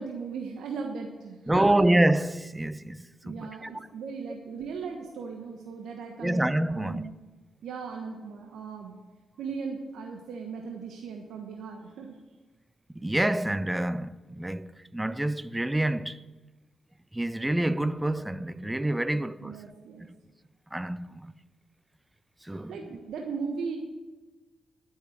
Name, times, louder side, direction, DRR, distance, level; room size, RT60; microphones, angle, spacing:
voice 1, 0.0-1.8 3.2-6.4 6.7-7.1 7.6-9.0 9.4-12.2 19.1-20.1 22.5-23.8, right 5 dB, 75° right, 1.2 m, -37 dB
voice 2, 1.5-3.7 6.2-7.0 13.0-16.2 17.1-19.6 20.7-21.3 22.4-22.8, right 1 dB, 15° right, 0.7 m, -27 dB
12.0 x 7.1 x 8.7 m
supercardioid pair, 45°, 0 cm